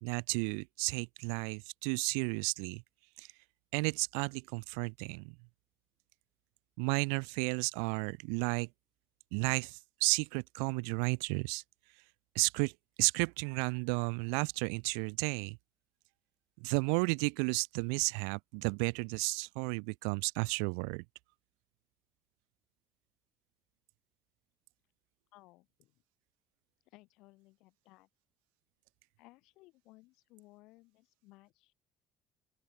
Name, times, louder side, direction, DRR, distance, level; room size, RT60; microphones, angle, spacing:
voice 1, 0.0-2.8 3.2-3.3 3.7-5.4 6.8-8.7 9.3-11.6 12.4-12.7 13.0-15.6 16.6-21.0, right 40 dB or more, 80° right, 0.3 m, -33 dB
voice 2, 25.3-25.9 26.8-28.1 29.2-31.7, left 21 dB, 75° left, 6.9 m, -60 dB
open air
hypercardioid pair, 65°, 0 cm